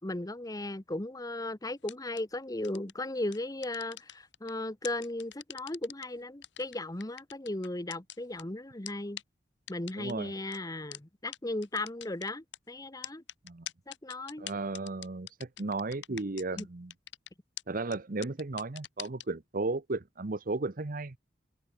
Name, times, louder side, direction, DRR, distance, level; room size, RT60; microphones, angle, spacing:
voice 1, 0.0-9.2 9.7-13.2 13.9-14.5 16.1-16.2 16.5-16.7, left 2 dB, 20° left, 1.2 m, -36 dB
sound 1, 1.8-2.2 2.6-2.9 3.3-4.5 4.8-6.0 6.4-8.4 8.9-9.0 9.2-9.3 9.7-10.1 10.5-10.6 10.9-11.0 11.3-11.4 11.6-12.6 13.0-16.6 16.9-17.3 17.6-17.7 17.9-18.0 18.2-19.2, left 12 dB, 85° left, 1.6 m, -43 dB
voice 2, 10.0-10.3 13.4-13.7 14.4-16.9 17.7-21.1, right 3 dB, 50° right, 0.9 m, -35 dB
head